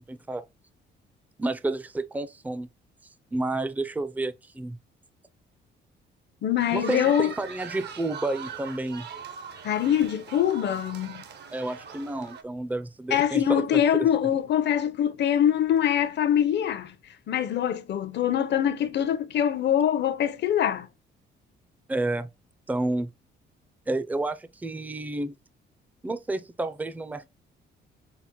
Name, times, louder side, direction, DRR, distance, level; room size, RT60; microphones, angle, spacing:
voice 1, 1.4-2.7 3.3-4.8 6.7-9.1 11.5-14.1 21.9-22.3 22.7-23.1 23.9-25.4 26.0-27.3, right 2 dB, 10° right, 0.4 m, -30 dB
voice 2, 6.4-7.3 9.6-11.2 13.1-16.9 17.3-20.9, left 10 dB, 60° left, 0.7 m, -24 dB
sound 1, 6.6-12.4, right 6 dB, 60° right, 0.8 m, -41 dB
5.7 x 2.1 x 2.9 m
cardioid pair, 90°, 20 cm